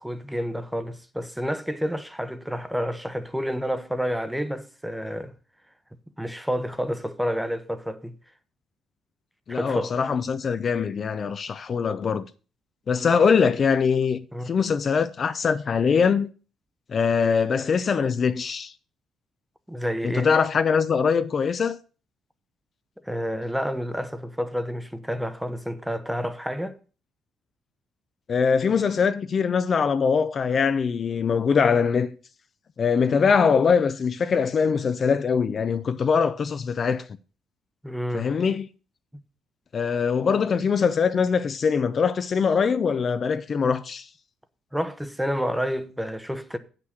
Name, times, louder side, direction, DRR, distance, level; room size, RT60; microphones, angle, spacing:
voice 1, 0.0-5.4 6.2-8.1 9.5-9.9 14.3-14.5 19.7-20.3 23.0-26.8 37.8-38.3 39.1-39.2 44.7-46.6, equal, 5° right, 0.8 m, -29 dB
voice 2, 9.5-12.3 12.9-14.2 14.5-16.3 16.9-18.7 20.0-21.8 28.3-32.2 32.8-37.1 38.1-38.7 39.7-44.1, left 6 dB, 40° left, 0.5 m, -22 dB
8.1 x 5.9 x 6.4 m
cardioid pair, 120°, 0 cm